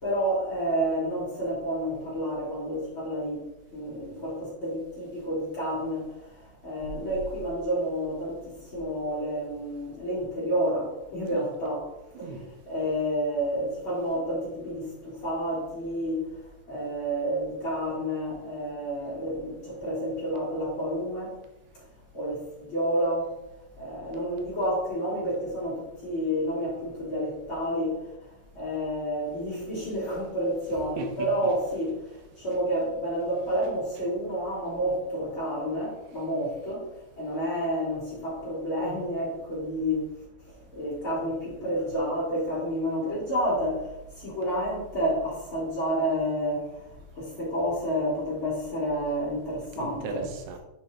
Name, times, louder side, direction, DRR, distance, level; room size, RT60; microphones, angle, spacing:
voice 1, 0.0-3.4 3.7-6.0 6.6-11.8 12.7-16.2 16.7-21.3 22.1-23.3 23.8-27.9 28.5-31.9 32.4-36.8 37.2-40.0 40.7-43.8 44.2-46.6 47.2-50.2, equal, 30° left, -8 dB, 3.3 m, -29 dB
voice 2, 12.1-12.5 30.7-31.5 49.8-50.6, right 3 dB, 80° right, 4 dB, 3.1 m, -37 dB
7.6 x 6.4 x 3.5 m, 0.94 s
omnidirectional pair, 5.0 m